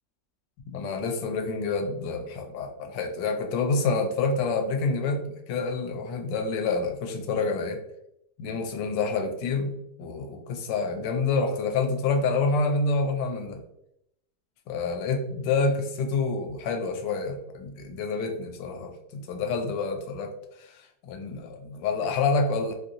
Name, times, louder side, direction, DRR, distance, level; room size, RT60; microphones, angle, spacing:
voice 1, 0.7-7.8 8.4-13.6 14.7-22.7, left 4 dB, 75° left, 4 dB, 1.2 m, -28 dB
3.0 x 2.7 x 2.6 m, 0.78 s
omnidirectional pair, 2.0 m